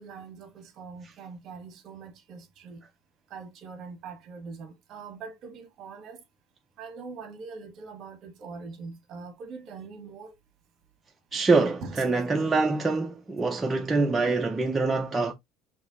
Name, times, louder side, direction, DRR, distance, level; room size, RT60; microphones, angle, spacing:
voice 1, 0.0-2.8 3.3-6.2 6.8-10.3 11.8-12.0, right 4 dB, 45° right, 1.3 m, -42 dB
voice 2, 11.3-15.3, right 3 dB, 15° right, 0.5 m, -25 dB
5.2 x 2.7 x 2.5 m
cardioid pair, 145°, 0 cm